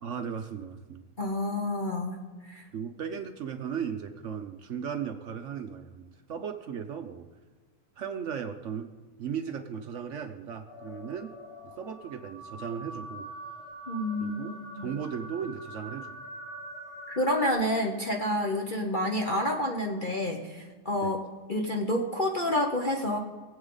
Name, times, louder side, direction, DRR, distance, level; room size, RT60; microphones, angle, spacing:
voice 1, 0.0-1.0 2.7-7.3 8.0-8.9 9.2-11.4 11.6-13.3 14.2-16.1 21.0-21.1, right 7 dB, 60° right, 7 dB, 0.8 m, -36 dB
voice 2, 1.2-2.2 2.5-2.7 13.9-14.9 17.1-21.2 21.5-23.2, left 1 dB, 35° left, 1 dB, 0.9 m, -29 dB
sound 1, 10.7-17.5, right 1 dB, 85° left, 3.3 m, -44 dB
21.0 x 8.0 x 3.9 m, 1.4 s
omnidirectional pair, 1.8 m